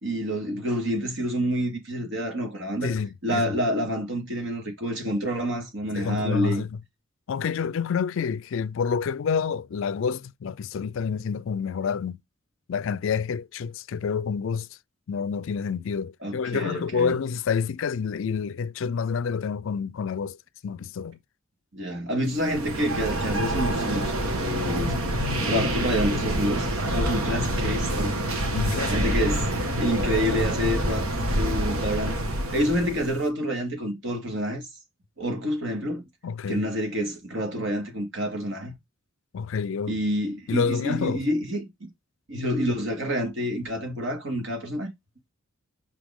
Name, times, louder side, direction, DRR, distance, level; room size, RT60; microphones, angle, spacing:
voice 1, 0.0-2.9 3.2-6.6 16.2-17.1 21.7-24.1 24.4-28.1 28.9-29.5 29.8-31.1 31.3-32.2 32.5-34.7 35.2-36.0 36.5-38.7 39.9-41.9 42.3-44.9, equal, 60° right, 2.2 m, -28 dB
voice 2, 2.8-3.5 5.9-6.7 7.3-12.2 12.7-14.7 15.1-20.4 20.6-21.2 28.5-29.0 36.2-36.6 39.3-39.9 40.5-41.2, left 6 dB, 65° left, 0.3 m, -28 dB
sound 1, 22.4-33.2, right 1 dB, 85° right, 1.4 m, -27 dB
5.5 x 5.1 x 3.6 m
head